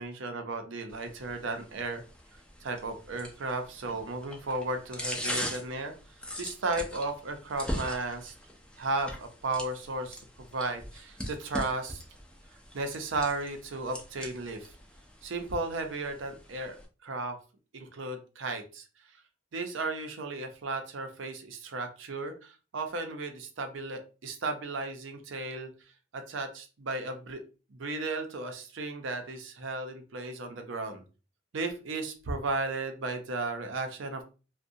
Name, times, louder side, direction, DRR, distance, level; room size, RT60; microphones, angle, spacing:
voice 1, 0.0-2.0 2.6-5.9 6.4-8.3 8.8-10.2 10.5-12.0 12.7-14.7 15.2-16.8 17.0-17.4 17.7-18.8 19.5-25.7 26.1-27.4 27.7-31.0 31.5-34.2, right 3 dB, 70° right, 6 dB, 0.6 m, -34 dB
sound 1, 0.9-16.9, equal, 5° left, 0.4 m, -41 dB
2.5 x 2.1 x 2.6 m, 0.33 s
head